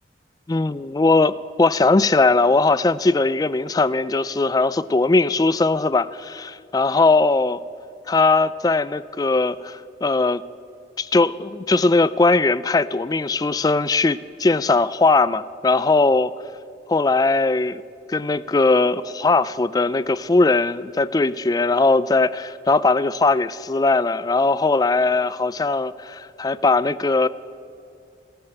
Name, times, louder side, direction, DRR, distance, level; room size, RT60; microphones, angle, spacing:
voice 1, 0.5-7.6 8.1-10.4 11.0-16.3 16.9-17.8 18.1-27.3, left 3 dB, 20° left, 0.3 m, -19 dB
14.0 x 12.5 x 7.8 m
head